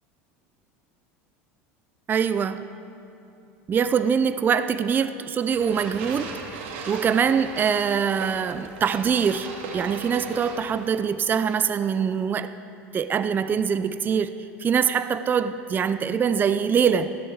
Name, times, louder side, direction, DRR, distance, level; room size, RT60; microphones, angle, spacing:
voice 1, 2.1-2.6 3.7-6.3 6.9-12.5 12.9-17.2, right 7 dB, 30° right, 12 dB, 0.5 m, -23 dB
sound 1, 5.5-11.0, right 4 dB, 75° right, 2.3 m, -38 dB
13.5 x 10.5 x 8.0 m, 2.7 s
supercardioid pair, 100°, 7 cm